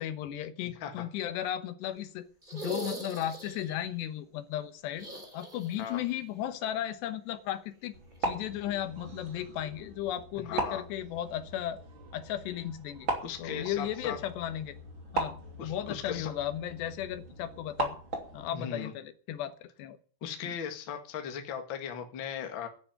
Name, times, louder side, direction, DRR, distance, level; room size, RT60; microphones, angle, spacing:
voice 1, 0.0-2.3 2.5-5.1 5.3-8.0 8.2-11.8 12.1-13.1 13.4-14.8 15.1-15.4 15.6-18.0 18.3-20.0 20.4-20.6, left 11 dB, 75° left, 11 dB, 3.2 m, -35 dB
sound 1, 2.4-3.8 4.9-6.1 6.4-6.5 8.1-8.2, right 1 dB, 10° right, 3.0 m, -41 dB
sound 2, 7.9-18.5, right 2 dB, 30° right, 3.1 m, -39 dB
voice 2, 10.5-10.8 13.2-14.2 15.6-16.3 18.5-18.9 20.2-22.7, left 7 dB, 40° left, 5 dB, 1.8 m, -37 dB
11.0 x 10.5 x 9.2 m, 0.42 s
omnidirectional pair, 5.1 m